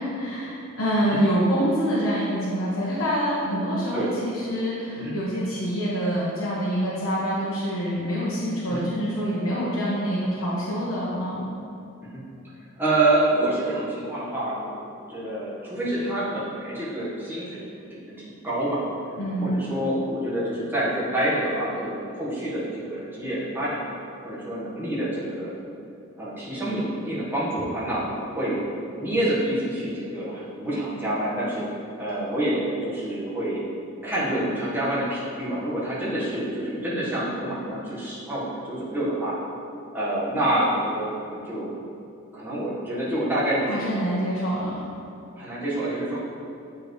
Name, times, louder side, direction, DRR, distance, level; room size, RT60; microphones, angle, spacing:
voice 1, 0.1-11.4 19.2-19.5 43.7-44.8, equal, 75° left, -8 dB, 1.2 m, -26 dB
voice 2, 12.8-17.6 17.9-18.2 18.4-18.8 19.4-23.8 24.2-25.5 26.2-28.6 29.0-31.7 32.0-33.6 34.0-39.4 39.9-41.7 42.3-43.9 45.4-46.2, right 1 dB, 10° right, -9 dB, 1.4 m, -27 dB
8.6 x 4.7 x 3.2 m, 2.7 s
head